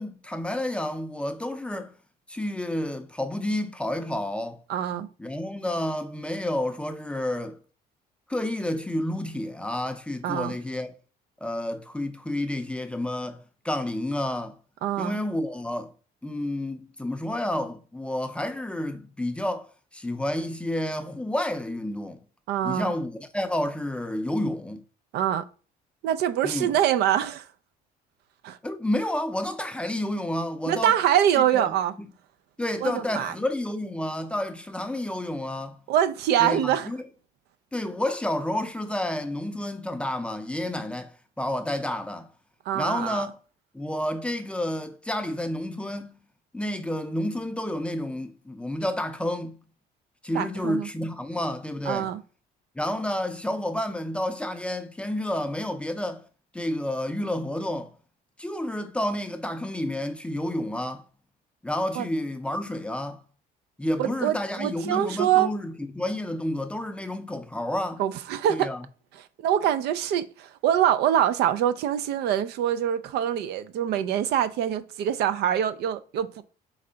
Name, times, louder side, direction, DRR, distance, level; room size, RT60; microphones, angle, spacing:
voice 1, 0.0-1.9 2.3-4.6 5.2-7.6 8.3-10.9 11.4-14.6 15.0-15.9 16.2-22.2 22.6-24.8 26.4-26.7 28.6-30.9 31.4-31.7 32.6-35.8 36.4-37.1 37.7-42.3 42.7-43.3 43.7-46.2 46.5-49.6 50.2-52.1 52.8-56.3 56.5-57.9 58.4-61.0 61.6-63.2 63.8-68.0 68.5-68.8, left 1 dB, 5° left, 0.4 m, -30 dB
voice 2, 4.7-5.1 10.2-10.5 14.8-15.2 22.5-22.9 25.1-25.5 26.0-27.5 28.4-28.6 30.7-31.9 32.8-33.3 35.9-36.9 42.7-43.3 50.3-50.9 51.9-52.2 62.0-62.1 64.0-65.5 68.0-68.7 69.4-76.4, right 10 dB, 75° right, 0.4 m, -24 dB
3.5 x 3.2 x 3.9 m
cardioid pair, 110°, 17 cm